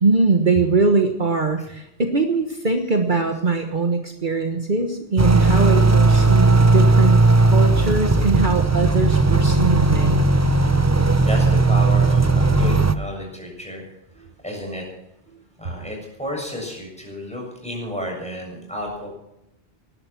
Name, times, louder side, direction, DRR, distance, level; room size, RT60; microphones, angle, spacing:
voice 1, 0.0-10.2 14.2-14.3, right 3 dB, 50° right, 4 dB, 1.5 m, -21 dB
sound 1, 5.2-13.0, right 3 dB, 20° right, 0.7 m, -16 dB
voice 2, 11.0-13.9 14.2-14.9 15.6-19.1, equal, 5° left, -1 dB, 6.9 m, -32 dB
19.5 x 11.5 x 6.0 m, 0.84 s
omnidirectional pair, 1.1 m